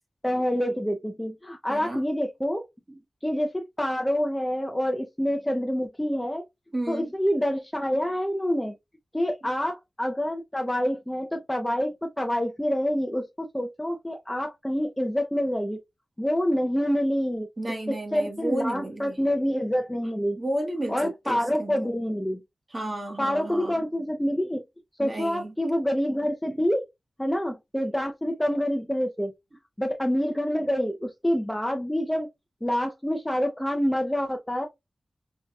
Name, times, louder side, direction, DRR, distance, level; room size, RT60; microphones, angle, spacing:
voice 1, 0.2-2.6 3.2-6.4 6.9-8.7 9.1-15.8 16.2-17.5 18.1-20.4 20.9-22.4 23.2-24.6 25.0-26.8 27.2-29.3 29.8-32.3 32.6-34.7, equal, 10° left, 0.6 m, -27 dB
voice 2, 1.7-2.0 2.9-3.0 6.7-7.1 17.6-19.2 20.4-21.9 22.7-23.9 25.0-25.5 26.5-26.6, right 1 dB, 30° right, 1.1 m, -32 dB
4.5 x 2.3 x 2.7 m
wide cardioid pair, 75°, 0 cm